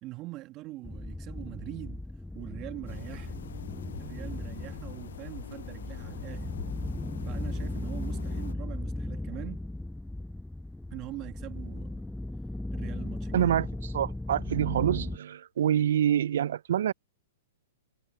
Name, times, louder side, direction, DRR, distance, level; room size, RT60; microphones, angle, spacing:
voice 1, 0.0-2.1 2.3-3.3 4.0-6.5 7.2-9.6 10.9-12.1 12.7-13.5, right 18 dB, 35° right, 1.7 m, -43 dB
sound 1, 0.8-15.2, left 1 dB, 5° left, 0.4 m, -37 dB
sound 2, 2.9-8.5, left 8 dB, 70° left, 0.4 m, -44 dB
voice 2, 13.3-16.9, right 10 dB, 65° right, 0.5 m, -26 dB
hypercardioid pair, 115°, 0 cm